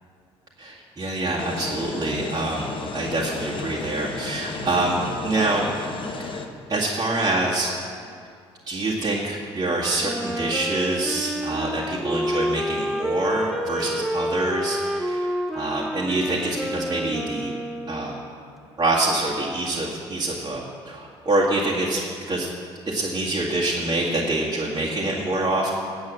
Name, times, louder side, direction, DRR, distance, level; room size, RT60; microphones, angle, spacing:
voice 1, 0.6-5.7 6.2-6.4 6.7-7.7 8.7-17.5 17.9-18.1 18.8-22.5 22.9-25.7, right 2 dB, 25° right, -7 dB, 2.1 m, -26 dB
sound 1, 1.4-6.5, left 3 dB, 35° left, 1.3 m, -33 dB
Wind instrument woodwind instrument, 10.0-18.3, equal, ahead, 0.8 m, -29 dB
9.4 x 8.1 x 7.5 m, 2.3 s
hypercardioid pair, 50°, 14 cm